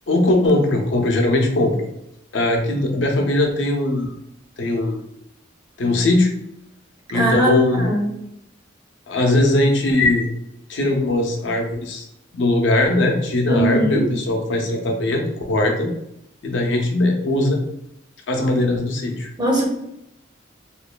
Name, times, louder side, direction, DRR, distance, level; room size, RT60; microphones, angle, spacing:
voice 1, 0.1-1.9 2.3-4.1 4.6-5.0 5.8-6.3 7.1-7.9 9.1-10.3 10.7-12.1 12.3-15.9 16.4-17.6 18.3-19.3, left 2 dB, 65° left, 2 dB, 0.5 m, -20 dB
voice 2, 7.1-8.0 13.5-14.1 19.4-19.6, right 1 dB, 20° right, -1 dB, 0.6 m, -20 dB
3.0 x 2.2 x 2.2 m, 0.79 s
head